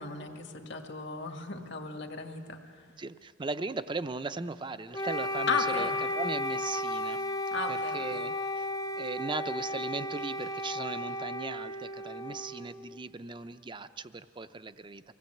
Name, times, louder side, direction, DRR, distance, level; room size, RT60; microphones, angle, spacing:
voice 1, 0.0-2.6 5.5-6.0 7.5-8.3, left 4 dB, 65° left, 4 dB, 1.9 m, -35 dB
voice 2, 3.0-8.7 9.0-15.1, right 3 dB, 25° right, 12 dB, 0.6 m, -38 dB
Wind instrument woodwind instrument, 4.9-13.0, left 1 dB, 20° left, 0.5 m, -34 dB
25.0 x 17.5 x 7.9 m, 2.2 s
head